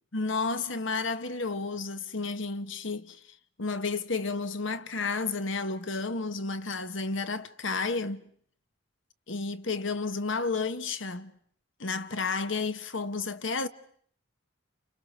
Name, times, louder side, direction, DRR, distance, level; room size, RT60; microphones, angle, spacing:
voice 1, 0.1-3.2 3.6-8.2 9.3-11.3 11.8-13.7, left 4 dB, 65° left, 1.3 m, -31 dB
30.0 x 28.5 x 6.4 m
head